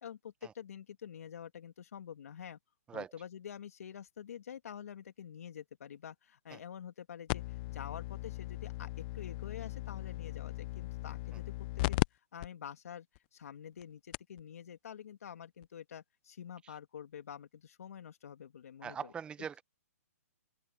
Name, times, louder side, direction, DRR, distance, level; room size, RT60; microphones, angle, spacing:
voice 1, 0.0-2.6 2.9-7.4 7.7-13.1 13.3-19.1, left 8 dB, 70° left, 2.8 m, -47 dB
sound 1, 7.3-12.1 12.4-12.5 13.2-13.3 13.8-13.9 14.1-14.4 15.6-15.7, left 21 dB, 35° left, 0.4 m, -37 dB
voice 2, 18.8-19.6, right 7 dB, 10° right, 0.8 m, -41 dB
open air
hypercardioid pair, 145°, 8 cm